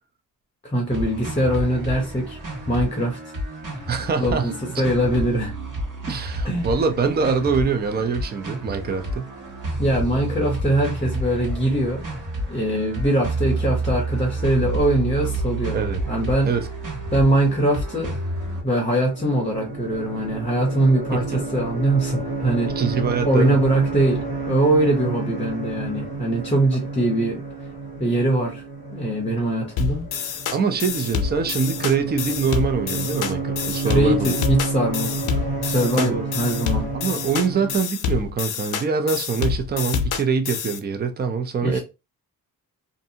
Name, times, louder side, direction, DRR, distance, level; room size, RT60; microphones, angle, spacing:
voice 1, 0.6-2.4 2.7-3.2 4.2-5.5 6.4-6.7 9.8-12.1 12.5-15.8 16.1-16.5 17.1-18.1 18.6-22.8 23.2-27.4 28.0-28.6 28.9-30.4 33.8-35.2 35.6-36.9 41.6-41.8, right 1 dB, 15° left, 0.7 m, -22 dB
sound 1, 0.9-18.6, right 2 dB, 60° right, 1.3 m, -30 dB
voice 2, 3.9-4.8 6.1-9.3 10.3-10.4 15.7-16.0 16.5-16.7 21.1-21.3 22.8-23.6 30.5-34.3 36.0-36.2 36.9-41.8, right 5 dB, 30° right, 0.4 m, -24 dB
sound 2, 18.3-37.8, right 3 dB, 75° right, 1.3 m, -30 dB
sound 3, 29.8-40.8, left 7 dB, 80° left, 0.6 m, -27 dB
2.6 x 2.3 x 2.7 m
wide cardioid pair, 120°, 37 cm